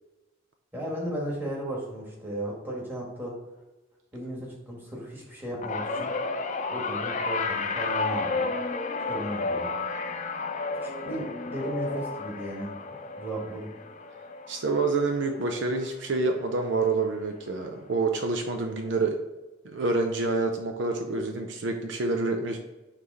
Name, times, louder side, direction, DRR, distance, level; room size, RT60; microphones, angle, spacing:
voice 1, 0.7-3.3 4.1-6.1 6.7-8.5 9.1-9.7 10.8-12.7 13.2-13.7, right 1 dB, 10° right, -4 dB, 1.5 m, -35 dB
sound 1, 5.6-16.1 16.4-16.8 17.9-18.0, left 4 dB, 35° left, 0.4 m, -32 dB
voice 2, 14.5-19.2 19.6-22.6, right 3 dB, 60° right, 4 dB, 0.5 m, -27 dB
5.8 x 3.2 x 5.4 m, 1.1 s
head